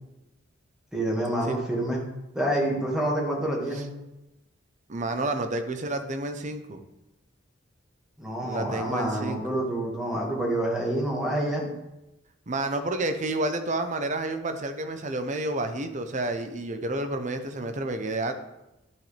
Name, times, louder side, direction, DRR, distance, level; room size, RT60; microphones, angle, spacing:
voice 1, 0.9-2.0 2.3-3.9 8.2-11.7, right 1 dB, 5° right, -3 dB, 1.9 m, -27 dB
voice 2, 4.9-6.8 8.4-9.4 12.5-18.3, right 2 dB, 40° right, 7 dB, 0.8 m, -30 dB
12.0 x 6.2 x 3.4 m, 0.95 s
head